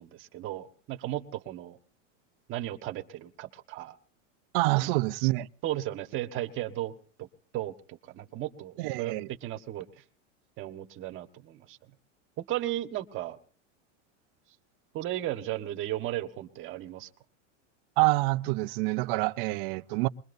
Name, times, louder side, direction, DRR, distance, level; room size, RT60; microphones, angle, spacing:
voice 1, 0.0-1.8 2.5-4.0 4.8-4.9 5.6-6.9 7.2-7.3 7.5-9.1 9.4-10.0 10.6-11.8 12.4-13.4 14.9-17.1, right 14 dB, 30° right, 1.4 m, -35 dB
voice 2, 4.5-5.5 8.8-9.3 18.0-20.1, right 22 dB, 50° right, 0.7 m, -27 dB
23.5 x 22.0 x 2.7 m
supercardioid pair, 155°, 38 cm